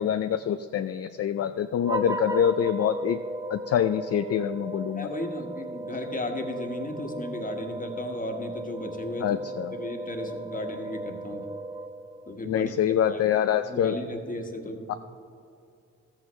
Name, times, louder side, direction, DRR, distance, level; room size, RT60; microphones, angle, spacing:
voice 1, 0.0-3.2 3.5-5.1 9.2-9.7 12.5-14.0, left 9 dB, 55° left, 10 dB, 0.4 m, -25 dB
sound 1, 1.8-12.4, right 1 dB, 10° right, 0.6 m, -36 dB
voice 2, 4.9-9.4 9.7-11.5 12.3-13.2 13.6-14.9, left 1 dB, 25° left, 3 dB, 1.4 m, -35 dB
13.5 x 8.5 x 3.2 m, 2.5 s
cardioid pair, 55°, 30 cm